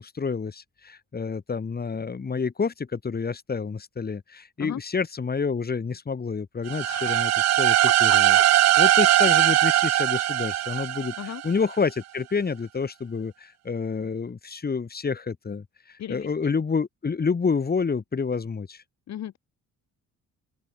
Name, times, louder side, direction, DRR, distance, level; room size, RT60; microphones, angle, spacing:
voice 1, 0.0-8.4 8.8-18.8, left 5 dB, 30° left, 2.8 m, -29 dB
sound 1, 6.7-11.5, right 13 dB, 60° right, 0.6 m, -20 dB
voice 2, 6.8-7.4 8.1-8.4 11.2-11.4 16.0-16.5 19.1-19.4, left 11 dB, 65° left, 1.6 m, -37 dB
open air
cardioid pair, 90°, 30 cm